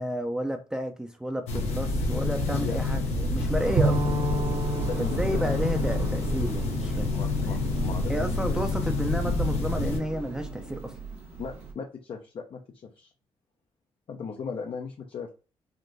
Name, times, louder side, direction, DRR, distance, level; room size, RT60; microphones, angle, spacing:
voice 1, 0.0-4.1 5.0-7.1 7.4-7.6 8.1-11.0, equal, 5° right, 0.5 m, -31 dB
sound 1, 1.5-10.0, left 2 dB, 90° left, 0.8 m, -28 dB
voice 2, 2.5-2.8 3.7-4.0 4.8-5.7 7.1-8.8 11.4-13.1 14.1-15.3, left 6 dB, 55° left, 0.5 m, -38 dB
sound 2, 3.6-11.7, right 4 dB, 90° right, 1.0 m, -39 dB
Bowed string instrument, 3.8-7.5, right 4 dB, 50° right, 0.6 m, -31 dB
3.6 x 2.4 x 2.6 m
cardioid pair, 65°, 11 cm